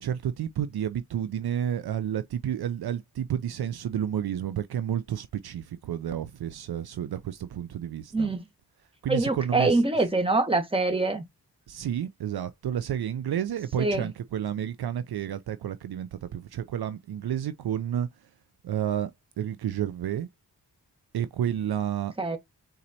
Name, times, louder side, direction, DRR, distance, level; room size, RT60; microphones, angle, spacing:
voice 1, 0.0-8.3 9.0-9.8 11.7-18.1 18.6-19.1 19.4-20.3 21.1-22.1, right 10 dB, 70° right, 0.5 m, -30 dB
voice 2, 8.1-8.4 9.1-11.2 13.8-14.1 22.2-22.4, right 2 dB, 15° right, 1.5 m, -24 dB
4.3 x 4.0 x 2.7 m
cardioid pair, 65°, 40 cm